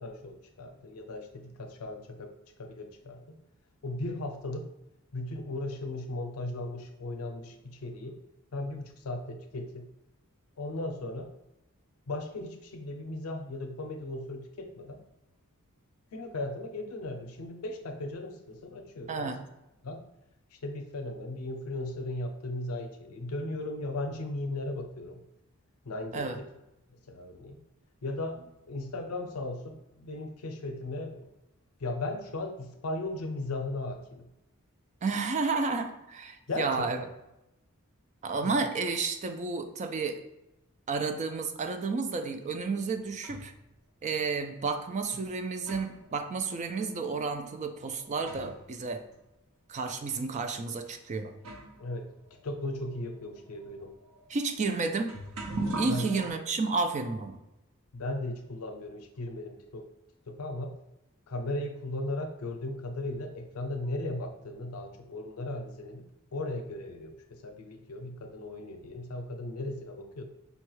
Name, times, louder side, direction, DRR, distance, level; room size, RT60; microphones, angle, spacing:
voice 1, 0.0-2.3 2.6-3.4 3.8-4.7 5.1-8.2 8.5-9.9 10.6-11.3 12.1-15.0 16.1-19.3 19.8-20.0 20.6-25.2 25.8-26.3 26.9-27.6 28.0-31.3 31.8-34.3 36.5-36.9 38.4-38.5 51.8-52.1 52.4-53.9 55.8-56.2 57.9-59.9 60.3-60.7 61.3-66.0 66.3-70.2, left 2 dB, 85° left, 6 dB, 0.5 m, -37 dB
voice 2, 19.1-19.4 26.1-26.4 35.0-37.0 38.2-40.2 40.9-43.5 44.0-49.0 49.7-51.3 54.3-55.1 55.8-57.4, right 4 dB, 35° right, 7 dB, 0.3 m, -31 dB
sound 1, 42.6-43.6 44.6-44.7 45.3-48.7 49.0-49.1 50.0-50.1 50.9-51.0 51.4-56.3, right 2 dB, 70° right, 0.8 m, -41 dB
5.3 x 2.3 x 3.0 m, 0.90 s
head